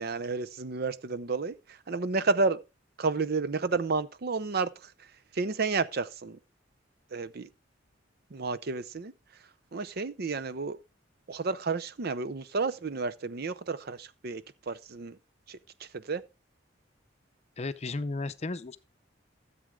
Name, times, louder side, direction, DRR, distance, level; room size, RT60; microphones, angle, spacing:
voice 1, 0.0-2.6 3.0-4.9 5.3-6.4 7.1-7.5 8.3-9.1 9.7-10.8 11.3-15.2 15.5-16.2, right 4 dB, 55° right, 0.6 m, -31 dB
voice 2, 17.6-18.8, left 3 dB, 35° left, 0.6 m, -34 dB
13.5 x 7.8 x 3.6 m
head